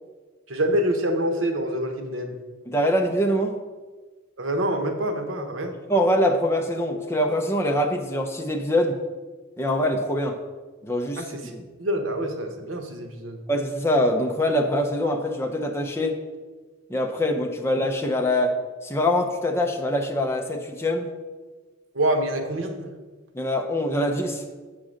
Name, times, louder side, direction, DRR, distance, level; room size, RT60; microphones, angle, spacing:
voice 1, 0.5-2.4 4.4-5.8 11.2-13.4 21.9-23.0, right 1 dB, 85° right, 4 dB, 0.9 m, -26 dB
voice 2, 2.7-3.5 5.9-9.0 9.6-10.4 10.8-11.6 13.5-16.2 16.9-18.6 18.8-21.1 23.3-24.4, left 1 dB, 15° left, 2 dB, 0.5 m, -24 dB
7.5 x 3.8 x 6.3 m, 1.4 s
head